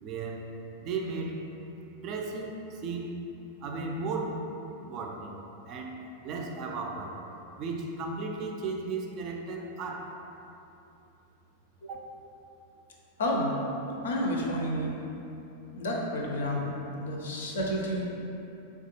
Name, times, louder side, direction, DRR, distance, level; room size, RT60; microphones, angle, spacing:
voice 1, 0.0-0.5 0.8-1.4 2.0-3.2 3.6-4.5 4.8-5.4 5.7-6.0 6.2-7.2 7.6-10.1 11.9-12.0, right 3 dB, 40° right, 1 dB, 0.3 m, -35 dB
voice 2, 13.2-13.5 14.0-15.0 15.7-18.1, equal, 65° left, -2 dB, 0.5 m, -30 dB
3.3 x 2.3 x 3.0 m, 2.8 s
figure-of-eight pair, 90°, 0 cm